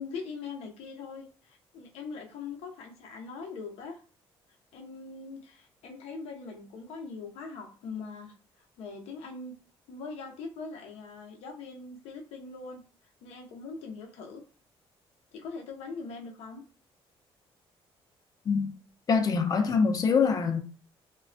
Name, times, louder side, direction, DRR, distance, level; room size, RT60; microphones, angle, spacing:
voice 1, 0.0-4.0 4.7-8.3 8.8-9.5 9.9-12.8 13.2-14.4 15.3-16.6, left 4 dB, 85° left, 0.6 m, -41 dB
voice 2, 19.1-20.6, left 5 dB, 35° left, 0.5 m, -24 dB
3.1 x 2.2 x 2.5 m
cardioid pair, 110°, 10 cm